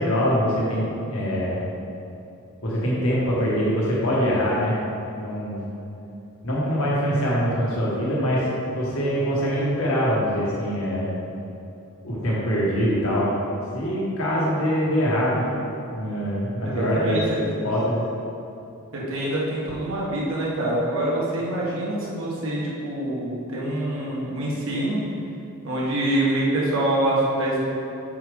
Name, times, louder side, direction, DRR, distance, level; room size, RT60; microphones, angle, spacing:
voice 1, 0.0-1.6 2.6-4.8 5.2-5.6 6.4-8.5 8.7-11.1 12.0-13.3 13.7-15.5 15.9-17.2 17.6-18.0, equal, 75° left, -6 dB, 1.6 m, -23 dB
voice 2, 16.6-17.2 18.9-25.0 25.6-27.7, right 1 dB, 65° right, -5 dB, 1.6 m, -25 dB
6.9 x 6.4 x 3.7 m, 2.8 s
head